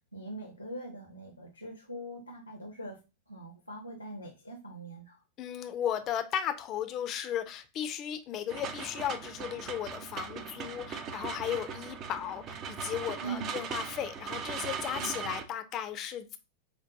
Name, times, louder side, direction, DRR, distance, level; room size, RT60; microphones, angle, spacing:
voice 1, 0.1-3.0 3.3-5.2 13.2-13.5 14.9-15.1, right 2 dB, 90° left, 0.7 m, -42 dB
voice 2, 5.4-16.4, left 10 dB, 35° left, 0.4 m, -35 dB
sound 1, 8.5-15.4, right 6 dB, 35° right, 0.5 m, -39 dB
5.2 x 2.2 x 2.5 m
figure-of-eight pair, 90°, 0 cm